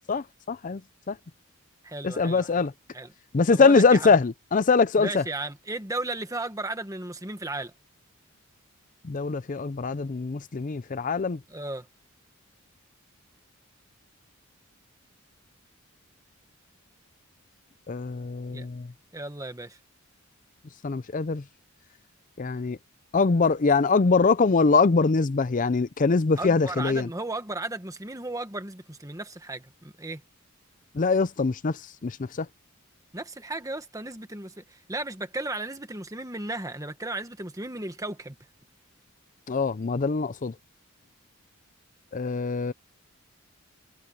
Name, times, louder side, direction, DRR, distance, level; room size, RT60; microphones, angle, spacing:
voice 1, 0.1-0.8 1.1-1.2 2.0-2.7 3.3-5.2 9.0-11.4 17.9-18.9 20.8-21.4 22.4-22.8 23.1-27.1 30.9-32.5 39.5-40.5 42.1-42.7, left 4 dB, 35° left, 0.5 m, -23 dB
voice 2, 1.8-2.7 2.9-3.1 3.5-4.1 5.0-7.7 11.5-11.9 18.5-18.7 19.1-19.8 26.4-30.2 33.1-38.4, right 2 dB, 15° right, 1.5 m, -35 dB
head